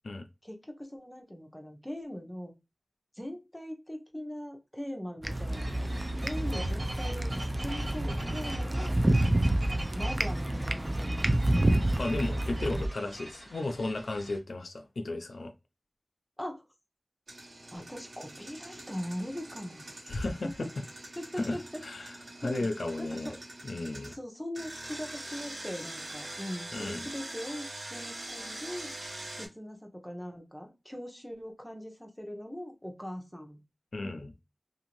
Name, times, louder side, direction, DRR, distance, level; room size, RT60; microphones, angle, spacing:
voice 1, 0.4-2.5 3.1-5.9 6.2-9.0 9.9-11.7 16.4-16.6 17.7-19.9 20.4-20.7 21.2-22.1 22.4-22.7 23.0-23.4 24.1-28.9 29.4-33.6, equal, 10° left, 0.8 m, -41 dB
sound 1, 5.2-12.9, right 1 dB, 30° right, 0.4 m, -29 dB
sound 2, 5.5-14.4, right 1 dB, 55° right, 1.7 m, -41 dB
voice 2, 12.0-15.5 20.1-20.7 21.4-21.6 21.8-22.1 22.4-23.3 23.6-24.1 26.7-27.0 33.9-34.3, left 2 dB, 90° left, 0.4 m, -34 dB
Engine, 17.3-24.1 24.6-29.5, right 1 dB, 85° right, 1.1 m, -43 dB
2.6 x 2.5 x 3.0 m
wide cardioid pair, 55°, 0 cm